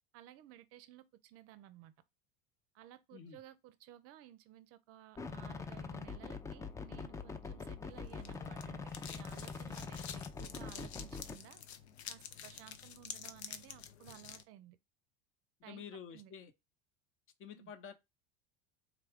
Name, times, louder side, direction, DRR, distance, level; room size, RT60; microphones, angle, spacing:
voice 1, 0.1-1.9 2.7-11.6 12.1-14.8 15.6-16.3 17.5-17.7, right 13 dB, 50° right, 0.5 m, -56 dB
sound 1, 5.2-11.4, left 4 dB, 10° left, 0.3 m, -44 dB
sound 2, 7.8-14.4, left 8 dB, 90° left, 0.6 m, -49 dB
voice 2, 15.7-16.5 17.4-17.9, left 7 dB, 40° left, 0.8 m, -49 dB
3.6 x 2.3 x 3.4 m
hypercardioid pair, 90°, 31 cm